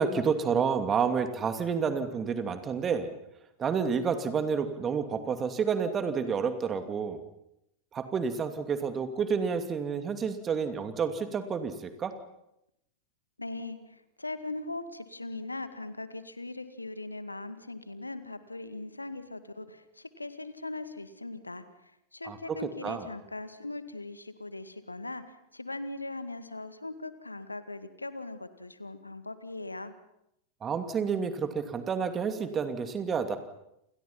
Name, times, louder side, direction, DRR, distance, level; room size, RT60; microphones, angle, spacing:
voice 1, 0.0-3.1 3.6-7.2 7.9-12.1 22.2-23.1 30.6-33.4, right 6 dB, 25° right, 8 dB, 2.7 m, -29 dB
voice 2, 13.4-29.9, left 2 dB, 85° left, 11 dB, 2.0 m, -40 dB
29.5 x 28.5 x 5.8 m, 0.81 s
figure-of-eight pair, 90°, 0 cm